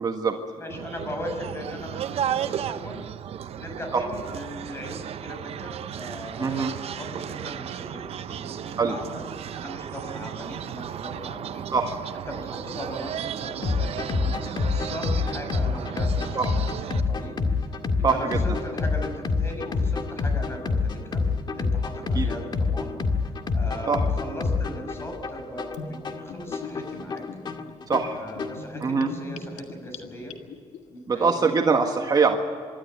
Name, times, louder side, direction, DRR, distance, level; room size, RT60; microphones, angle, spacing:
voice 1, 0.0-0.4 3.9-4.0 6.4-6.7 8.8-9.0 11.7-11.9 16.3-16.5 18.0-18.6 22.1-22.3 23.9-24.0 27.9-28.2 28.8-29.1 31.1-32.4, right 5 dB, 35° right, 4 dB, 1.6 m, -23 dB
voice 2, 0.6-3.0 3.5-11.7 12.3-16.7 17.1-17.4 18.0-21.2 21.5-23.0 23.5-27.2 28.1-30.3 30.9-31.6, equal, 20° left, 4 dB, 6.0 m, -38 dB
sound 1, 0.7-17.0, right 10 dB, 60° right, 0.7 m, -34 dB
sound 2, 13.6-28.6, left 4 dB, 40° left, 1.9 m, -27 dB
Gurgling / Bathtub (filling or washing), 25.7-30.8, left 4 dB, 80° left, 1.8 m, -41 dB
25.0 x 12.5 x 9.4 m, 2.1 s
cardioid pair, 105°, 11 cm